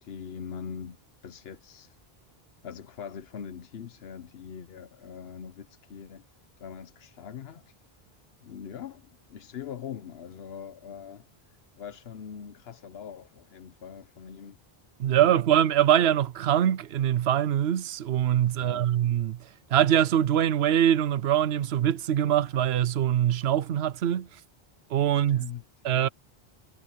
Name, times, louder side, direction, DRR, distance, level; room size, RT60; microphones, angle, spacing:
voice 1, 0.0-1.0 1.2-2.0 2.6-6.3 6.6-7.7 8.4-14.6 15.1-15.3 18.6-19.0 25.1-26.1, left 8 dB, 75° left, 1.0 m, -42 dB
voice 2, 15.0-19.4 19.7-24.3 24.9-25.5 25.8-26.1, right 10 dB, 90° right, 0.9 m, -23 dB
omnidirectional pair, 1.0 m